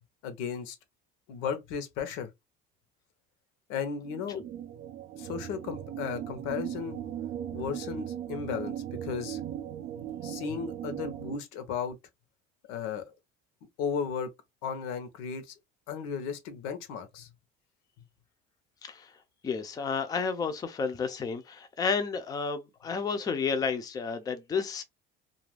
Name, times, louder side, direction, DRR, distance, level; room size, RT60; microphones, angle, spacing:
voice 1, 0.2-0.8 1.3-2.3 3.7-4.4 5.1-7.0 7.5-8.7 9.0-9.4 10.2-12.0 12.7-13.0 13.8-14.3 14.6-15.5 15.9-17.3, left 7 dB, 85° left, 0.8 m, -35 dB
sound 1, 4.0-11.4, right 10 dB, 55° right, 0.5 m, -38 dB
voice 2, 19.4-24.8, left 5 dB, 20° left, 0.4 m, -31 dB
2.4 x 2.3 x 3.2 m
cardioid pair, 145°, 20 cm